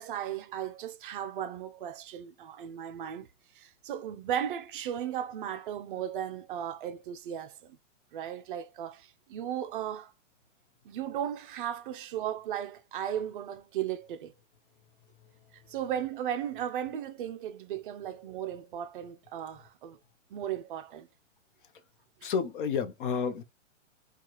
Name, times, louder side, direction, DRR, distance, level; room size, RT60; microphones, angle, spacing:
voice 1, 0.0-3.3 3.5-7.8 8.1-10.1 10.8-14.3 15.7-20.0 20.3-21.1 22.2-22.3, right 10 dB, 45° right, 0.5 m, -36 dB
voice 2, 22.2-23.4, left 6 dB, 45° left, 0.7 m, -30 dB
4.5 x 2.4 x 2.9 m
hypercardioid pair, 145°, 38 cm